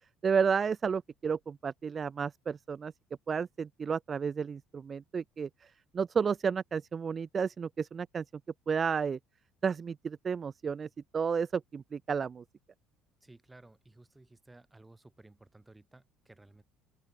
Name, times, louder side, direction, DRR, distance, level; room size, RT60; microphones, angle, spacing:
voice 1, 0.2-2.9 3.3-8.2 8.7-9.2 9.6-12.4, right 6 dB, 35° right, 0.9 m, -32 dB
voice 2, 13.2-16.6, right 2 dB, 15° right, 8.0 m, -57 dB
open air
supercardioid pair, 80°, 0 cm